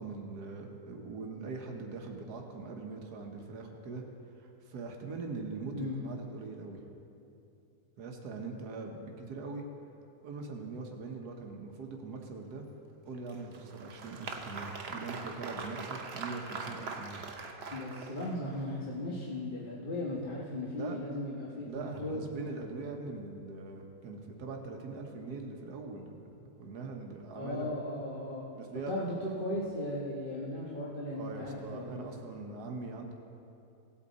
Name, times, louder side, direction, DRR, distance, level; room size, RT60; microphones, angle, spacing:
voice 1, 0.0-4.0 4.4-6.8 8.0-9.6 10.2-12.7 13.1-17.2 20.7-21.0 21.7-27.7 28.6-29.0 31.2-33.1, right 3 dB, 80° right, 2 dB, 1.6 m, -42 dB
Applause, 13.3-18.6, right 4 dB, 50° right, 1.0 m, -42 dB
voice 2, 17.7-22.3 27.4-28.5 28.9-32.2, left 1 dB, 35° left, -5 dB, 1.3 m, -37 dB
17.0 x 8.4 x 4.1 m, 2.8 s
omnidirectional pair, 1.7 m